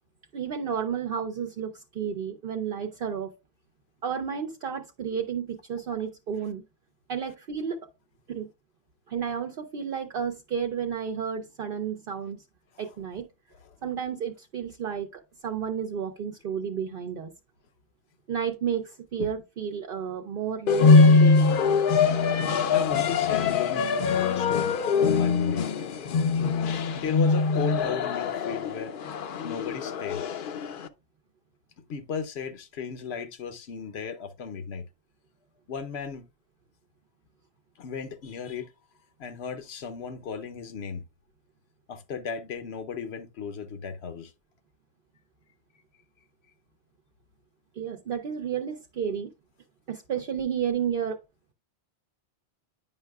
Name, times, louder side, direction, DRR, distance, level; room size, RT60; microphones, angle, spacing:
voice 1, 0.3-3.3 4.0-6.6 7.1-7.9 8.3-8.5 9.1-12.4 12.8-13.3 13.8-17.3 18.3-21.8 47.8-49.3 49.9-51.2, right 7 dB, 60° right, 0.8 m, -32 dB
sound 1, 20.7-30.9, left 4 dB, 60° left, 0.7 m, -22 dB
voice 2, 22.7-25.7 26.9-28.9 29.4-30.3 31.9-34.8 35.7-36.2 37.8-38.7 39.2-41.0 41.9-44.3, left 6 dB, 75° left, 1.1 m, -35 dB
9.7 x 5.6 x 2.3 m
omnidirectional pair, 1.1 m